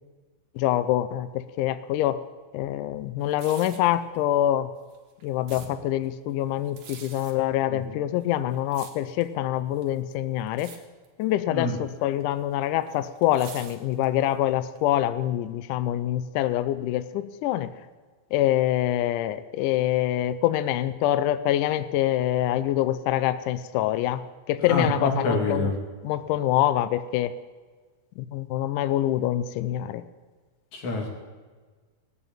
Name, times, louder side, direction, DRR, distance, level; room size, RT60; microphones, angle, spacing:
voice 1, 0.6-2.2 2.5-4.7 5.2-10.7 11.2-17.7 18.3-25.7 26.0-27.3 28.2-30.0, left 13 dB, 85° left, 14 dB, 1.8 m, -25 dB
sound 1, 3.2-3.9 4.8-5.7 6.6-7.3 8.2-9.3 9.8-10.1 10.5-10.8 11.0-11.3 12.2-14.3 14.8-14.9, right 7 dB, 60° right, 2.6 m, -45 dB
voice 2, 24.7-25.7 30.7-31.1, left 2 dB, 50° left, 1 dB, 3.8 m, -27 dB
18.5 x 7.0 x 8.9 m, 1.4 s
omnidirectional pair, 4.4 m